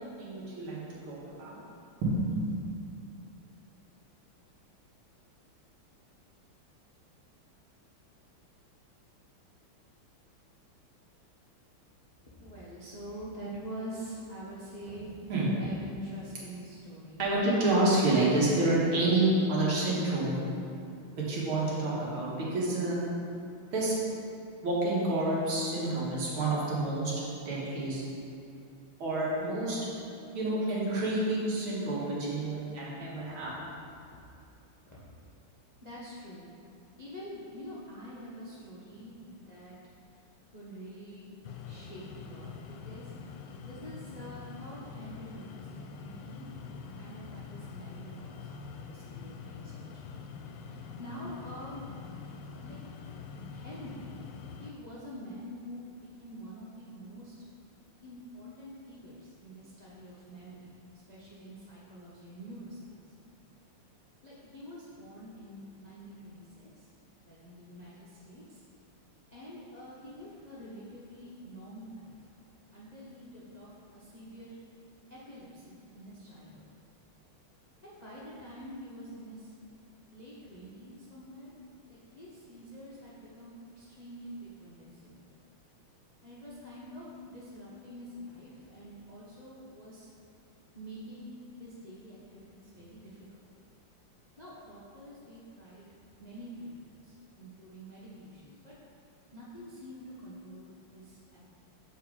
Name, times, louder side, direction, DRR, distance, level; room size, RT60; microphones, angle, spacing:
voice 1, 0.2-1.6 2.0-2.4 15.3-15.5 17.2-20.4 21.2-23.0 23.7-24.0 24.6-27.1 27.5-28.0 29.0-29.8 30.3-33.5, right 2 dB, 70° right, -6 dB, 2.3 m, -28 dB
voice 2, 12.2-15.1 15.6-17.5 34.9-35.0 35.8-36.5 37.0-39.1 39.5-39.8 40.5-41.3 41.7-43.1 43.6-46.6 46.9-50.2 50.6-51.8 52.6-52.8 53.5-54.2 54.6-55.9 56.2-57.3 58.0-60.8 61.1-63.0 64.2-66.8 67.3-68.6 69.3-72.1 72.7-74.6 75.1-76.6 77.8-79.5 80.1-81.5 81.9-85.3 86.2-90.1 90.7-93.3 94.4-95.8 96.2-98.7 99.3-101.5, equal, 40° left, -8 dB, 0.6 m, -46 dB
sound 1, 41.4-54.7, left 5 dB, 90° left, 1.5 m, -45 dB
7.1 x 4.6 x 4.7 m, 2.6 s
omnidirectional pair, 2.4 m